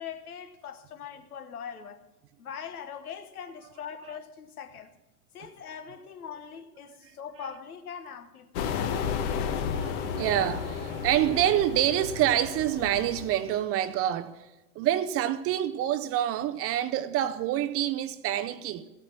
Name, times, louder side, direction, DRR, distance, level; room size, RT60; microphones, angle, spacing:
voice 1, 0.0-2.0 2.4-4.9 5.3-8.8, left 7 dB, 80° left, 1.3 m, -41 dB
sound 1, 8.5-13.5, left 7 dB, 55° left, 1.2 m, -32 dB
voice 2, 9.4-14.5 14.8-18.9, right 12 dB, 35° right, 0.5 m, -27 dB
15.0 x 8.9 x 5.9 m
hypercardioid pair, 95°, 44 cm